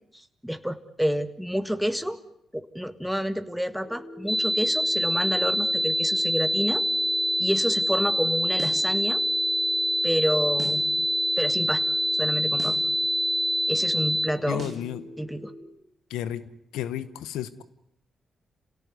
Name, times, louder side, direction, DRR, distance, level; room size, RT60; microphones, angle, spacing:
voice 1, 0.1-2.2 2.5-6.8 7.4-9.2 10.0-10.8 11.4-11.8 12.1-12.8 13.7-14.6 15.2-15.5, equal, ahead, 10 dB, 1.8 m, -29 dB
sound 1, 3.8-15.6, left 1 dB, 55° left, 4.3 m, -43 dB
sound 2, 4.3-14.3, equal, 15° left, 6.7 m, -25 dB
sound 3, 8.6-8.9 10.6-10.9 12.6-12.9 14.6-14.9, right 2 dB, 50° right, 3.9 m, -38 dB
voice 2, 14.5-15.0 16.1-16.4 16.7-17.6, left 11 dB, 85° left, 16 dB, 1.0 m, -32 dB
27.5 x 17.5 x 9.5 m, 0.78 s
supercardioid pair, 50°, 0 cm